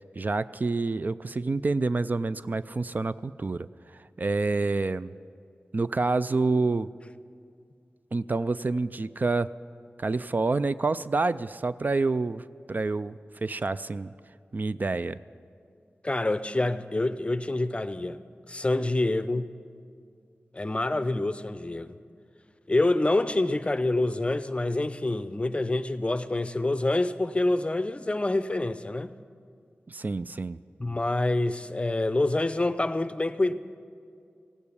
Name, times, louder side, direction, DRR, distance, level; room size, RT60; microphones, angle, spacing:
voice 1, 0.2-3.7 3.9-5.1 5.7-6.9 8.1-9.5 10.0-14.1 14.5-15.2 29.9-30.6, right 3 dB, 45° right, 0.3 m, -28 dB
voice 2, 16.0-18.2 18.5-19.5 20.5-21.9 22.7-29.1 30.8-33.5, left 2 dB, 30° left, 0.6 m, -26 dB
17.0 x 8.6 x 8.3 m
cardioid pair, 45°, 4 cm